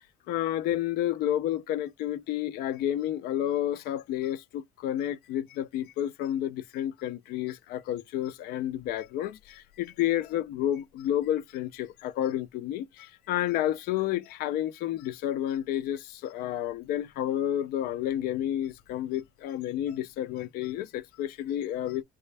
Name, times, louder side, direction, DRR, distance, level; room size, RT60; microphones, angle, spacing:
voice 1, 0.3-22.0, left 12 dB, 75° left, 0.4 m, -30 dB
3.3 x 2.3 x 3.3 m
cardioid pair, 140°, 16 cm